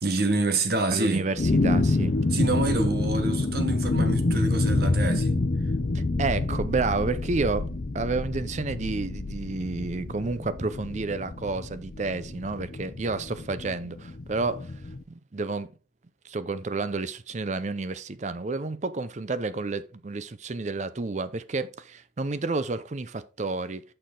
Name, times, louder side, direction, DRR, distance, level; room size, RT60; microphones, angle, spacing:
voice 1, 0.0-1.3 2.3-5.4, right 2 dB, 55° right, 1.2 m, -27 dB
voice 2, 0.9-2.2 6.2-7.7 7.9-14.7 15.1-15.7 16.2-23.8, right 3 dB, 40° right, 0.5 m, -30 dB
sound 1, 1.4-15.0, left 2 dB, 45° left, 0.6 m, -27 dB
6.6 x 6.3 x 3.8 m
head